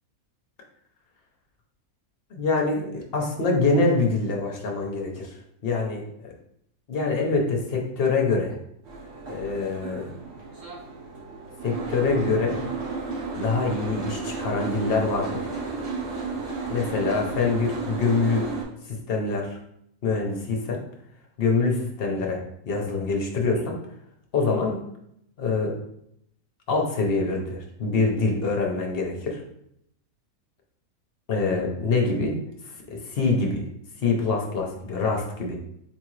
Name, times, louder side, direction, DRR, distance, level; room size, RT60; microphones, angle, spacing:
voice 1, 2.3-5.3 5.6-6.3 6.9-8.6 9.3-10.1 11.6-12.7 13.4-15.4 16.7-18.5 18.9-19.6 20.0-20.8 21.4-22.4 22.7-23.8 24.3-24.8 25.4-25.8 26.7-29.4 31.3-32.4 33.1-33.6 34.0-35.6, left 3 dB, 50° left, 0 dB, 0.8 m, -25 dB
Boat Water vehicle, 8.8-18.6, right 4 dB, 50° right, 1.3 m, -33 dB
3.7 x 3.7 x 3.1 m, 0.74 s
omnidirectional pair, 1.6 m